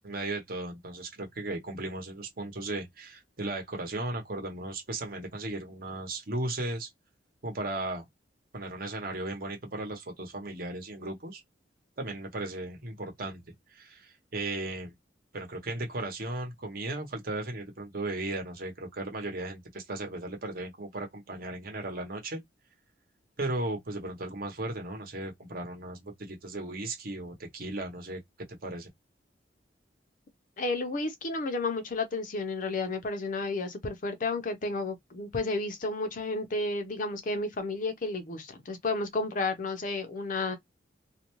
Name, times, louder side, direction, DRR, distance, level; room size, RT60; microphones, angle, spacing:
voice 1, 0.0-6.9 7.4-8.0 8.5-11.4 12.0-13.4 13.7-14.9 15.3-22.4 23.4-28.2 28.6-28.9, right 2 dB, 55° right, 0.9 m, -36 dB
voice 2, 30.6-40.6, left 3 dB, 45° left, 0.6 m, -32 dB
2.5 x 2.2 x 3.0 m
head